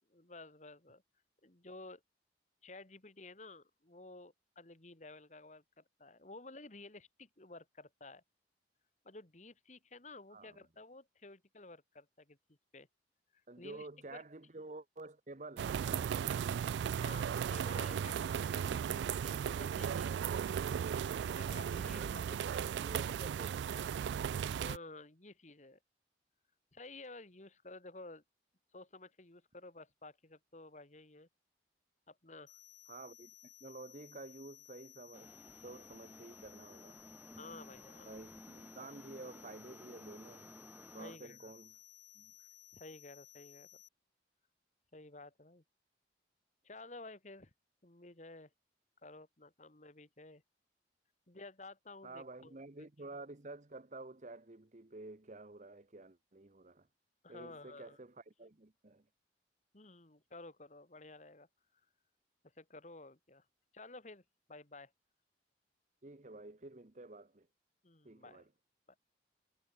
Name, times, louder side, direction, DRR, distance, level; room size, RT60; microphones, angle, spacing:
voice 1, 0.1-1.0 1.4-2.0 2.6-8.2 9.0-12.9 13.3-14.2 16.6-20.3 21.3-22.7 24.2-25.8 26.7-28.2 28.7-31.3 32.1-32.6 37.4-38.2 41.0-41.5 42.4-43.7 44.9-45.6 46.6-47.5 47.8-48.5 49.0-50.4 51.3-52.6 57.2-58.0 59.7-61.5 62.6-63.4 63.7-64.2 64.5-64.9 67.8-68.5, left 2 dB, 40° left, 2.0 m, -53 dB
voice 2, 13.5-16.4 21.8-22.2 22.6-24.0 32.9-33.3 33.6-37.0 38.0-40.5 40.9-41.7 42.1-42.3 52.0-56.9 57.3-59.1 66.0-67.5 68.0-68.5, right 2 dB, 40° right, 1.0 m, -51 dB
sound 1, 15.6-24.8, right 8 dB, 80° right, 0.3 m, -36 dB
sound 2, 32.5-43.9, left 14 dB, 90° left, 2.5 m, -59 dB
sound 3, 35.1-41.2, equal, 10° right, 4.9 m, -56 dB
head